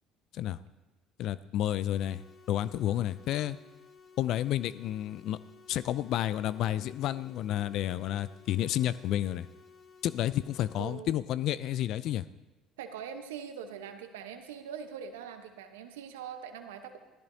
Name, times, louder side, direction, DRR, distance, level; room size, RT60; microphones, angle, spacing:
voice 1, 1.2-2.2 2.5-3.6 4.2-5.4 5.7-9.5 10.0-12.2, left 12 dB, 60° left, 16 dB, 0.4 m, -30 dB
sound 1, 1.9-10.9, left 5 dB, 40° left, 1.4 m, -56 dB
voice 2, 10.8-11.2 12.8-17.0, right 7 dB, 80° right, 7 dB, 1.0 m, -42 dB
16.0 x 13.5 x 2.8 m, 1.1 s
hypercardioid pair, 60°, 0 cm